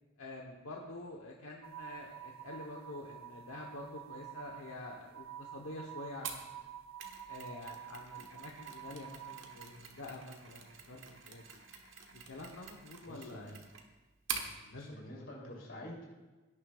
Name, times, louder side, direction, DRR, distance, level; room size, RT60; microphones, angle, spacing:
voice 1, 0.2-6.7 7.3-11.5 12.1-13.5 14.5-15.0 15.4-15.5, left 2 dB, 85° left, -1 dB, 1.2 m, -47 dB
sound 1, 1.6-9.8, right 10 dB, 80° right, 0.5 m, -49 dB
Mechanisms, 6.2-14.5, right 6 dB, 65° right, 1.4 m, -46 dB
voice 2, 13.1-13.6 14.7-16.3, left 1 dB, 60° left, -3 dB, 3.6 m, -48 dB
17.5 x 9.8 x 2.5 m, 1.2 s
head